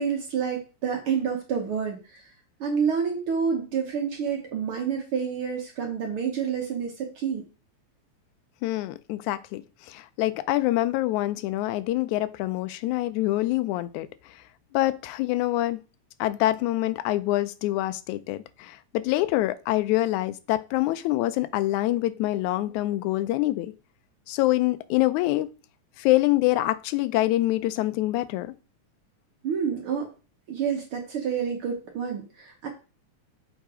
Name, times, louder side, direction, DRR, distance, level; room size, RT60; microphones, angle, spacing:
voice 1, 0.0-2.2 2.6-7.4 29.4-30.1 30.5-32.7, right 7 dB, 60° right, 1.6 m, -28 dB
voice 2, 8.6-14.1 14.7-15.8 16.2-23.7 24.3-25.5 26.0-28.5, left 16 dB, 85° left, 2.0 m, -25 dB
7.2 x 3.7 x 4.8 m
omnidirectional pair, 3.4 m